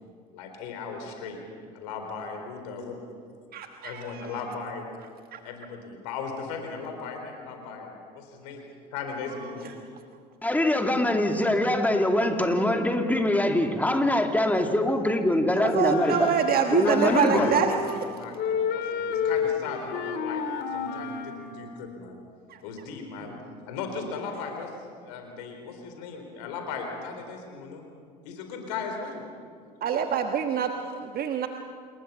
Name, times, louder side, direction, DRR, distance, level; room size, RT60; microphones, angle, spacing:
voice 1, 0.3-1.4 1.7-3.0 3.8-4.9 5.4-9.8 16.9-20.4 20.7-22.2 22.6-23.4 23.7-24.7 25.0-27.8 28.2-29.2, left 5 dB, 70° left, 4 dB, 4.1 m, -37 dB
voice 2, 3.5-4.3 5.3-5.4 15.6-18.0 22.5-22.6 29.8-31.5, right 7 dB, 45° right, 5 dB, 1.4 m, -26 dB
voice 3, 10.4-16.3 16.7-17.5, left 1 dB, 5° left, 4 dB, 2.6 m, -23 dB
Wind instrument woodwind instrument, 15.8-18.1 18.3-21.5, left 6 dB, 55° left, 2.4 m, -30 dB
28.5 x 21.0 x 5.7 m, 2.1 s
hypercardioid pair, 65°, 21 cm